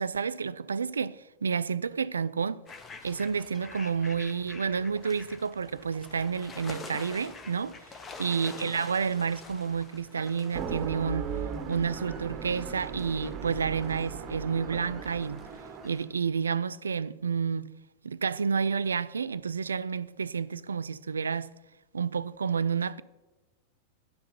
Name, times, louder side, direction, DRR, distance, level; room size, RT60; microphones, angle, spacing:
voice 1, 0.0-2.6 3.0-7.8 8.2-11.3 11.7-15.5 15.8-17.7 18.0-21.5 21.9-23.0, right 6 dB, 70° right, 0.3 m, -30 dB
sound 1, 2.7-16.1, left 4 dB, 20° left, 1.1 m, -47 dB
sound 2, 10.5-16.1, right 6 dB, 35° right, 0.9 m, -38 dB
10.5 x 5.6 x 6.8 m
figure-of-eight pair, 90°, 0 cm